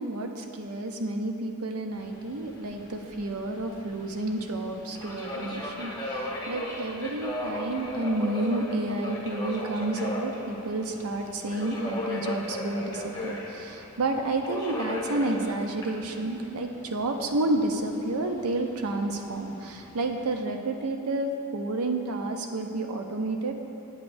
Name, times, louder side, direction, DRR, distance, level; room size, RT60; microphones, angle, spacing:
voice 1, 0.0-23.5, right 2 dB, 80° right, 4 dB, 0.6 m, -30 dB
Subway metro underground, 1.9-20.4, left 1 dB, 15° left, 0.8 m, -37 dB
8.4 x 8.0 x 2.6 m, 2.9 s
head